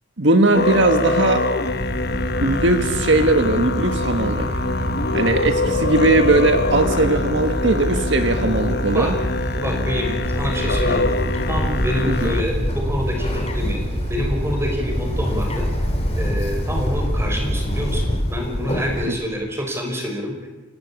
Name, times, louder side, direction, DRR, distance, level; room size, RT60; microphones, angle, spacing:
voice 1, 0.2-1.5 2.4-4.5 5.1-9.1 12.0-12.3 19.1-19.2, right 2 dB, 65° right, 7 dB, 1.5 m, -19 dB
Musical instrument, 0.5-12.4, left 2 dB, 55° left, 1.3 m, -24 dB
sound 1, 1.7-18.2, equal, 50° right, 4.3 m, -28 dB
voice 2, 9.6-11.2 11.5-15.7 16.1-20.5, equal, 15° right, 3 dB, 5.3 m, -27 dB
Bird, 10.2-19.1, equal, 30° left, 3.2 m, -25 dB
29.0 x 16.5 x 8.6 m, 1.1 s
head